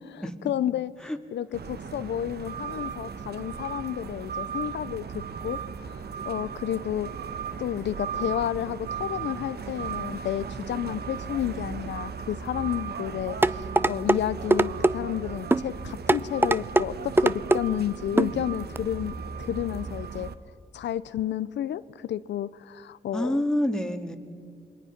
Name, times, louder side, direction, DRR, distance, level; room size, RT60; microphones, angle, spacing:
voice 1, 0.4-1.0 1.3-7.1 7.6-20.3 20.7-23.4, left 11 dB, 90° left, 15 dB, 0.5 m, -31 dB
sound 1, 1.5-20.3, right 6 dB, 65° right, 1.1 m, -36 dB
sound 2, 13.4-14.2 14.5-14.9 15.5-15.7 16.1-16.9 17.2-17.6 18.2-18.3 18.8-18.9, right 2 dB, 10° right, 0.5 m, -20 dB
voice 2, 23.1-24.2, left 1 dB, 5° left, 5 dB, 2.0 m, -27 dB
27.5 x 22.0 x 5.9 m, 2.2 s
cardioid pair, 75°, 18 cm